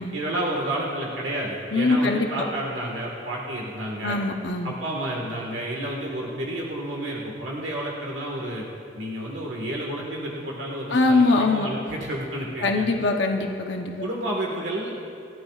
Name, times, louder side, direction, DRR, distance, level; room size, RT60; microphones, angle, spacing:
voice 1, 0.1-4.2 4.6-8.6 8.9-12.9 14.0-15.0, right 1 dB, 75° right, -2 dB, 1.7 m, -30 dB
voice 2, 1.7-2.3 4.0-4.7 10.9-11.7 12.6-14.1, left 3 dB, 65° left, 2 dB, 0.9 m, -22 dB
28.0 x 12.0 x 2.4 m, 2.7 s
head